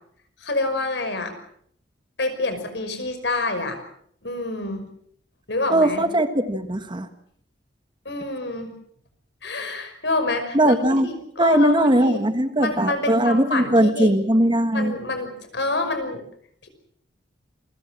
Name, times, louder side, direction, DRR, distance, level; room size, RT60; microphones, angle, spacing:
voice 1, 0.4-1.3 2.2-3.8 4.2-4.9 5.5-6.0 8.1-8.7 9.4-12.2 12.6-14.2 14.7-16.2 16.6-16.7, left 2 dB, 70° left, 8 dB, 5.6 m, -27 dB
voice 2, 5.7-7.1 10.5-11.1 11.4-14.9, right 1 dB, 25° right, 8 dB, 1.7 m, -19 dB
28.0 x 23.0 x 6.2 m, 0.66 s
head